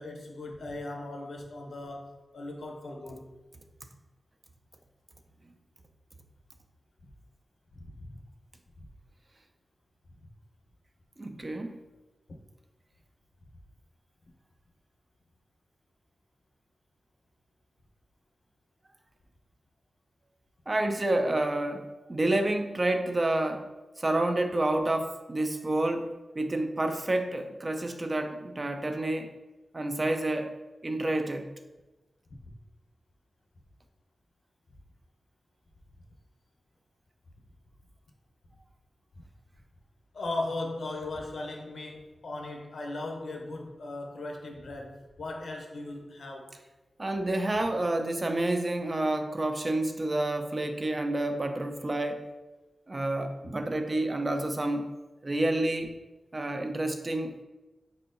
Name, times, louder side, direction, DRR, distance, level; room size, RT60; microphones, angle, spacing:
voice 1, 0.0-3.3 7.7-8.1 40.1-46.6, left 2 dB, 75° left, 1 dB, 0.8 m, -38 dB
voice 2, 11.2-11.8 20.7-23.7 24.0-29.3 29.7-30.5 30.8-31.5 47.0-52.2 52.9-54.9 55.2-55.9 56.3-57.4, right 1 dB, 35° right, 5 dB, 0.4 m, -29 dB
4.5 x 4.2 x 2.6 m, 1.1 s
wide cardioid pair, 95°, 0 cm